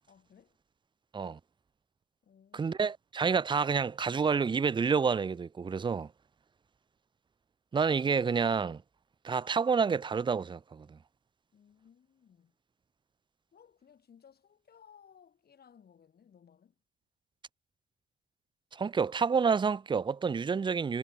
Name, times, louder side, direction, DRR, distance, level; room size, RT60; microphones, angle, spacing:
voice 1, 0.1-0.6 2.2-2.8 11.5-12.5 13.5-16.8, left 7 dB, 50° left, 5.3 m, -60 dB
voice 2, 2.5-6.1 7.7-8.8 9.2-11.0 18.7-21.0, right 5 dB, 25° right, 0.5 m, -29 dB
cardioid pair, 90°, 20 cm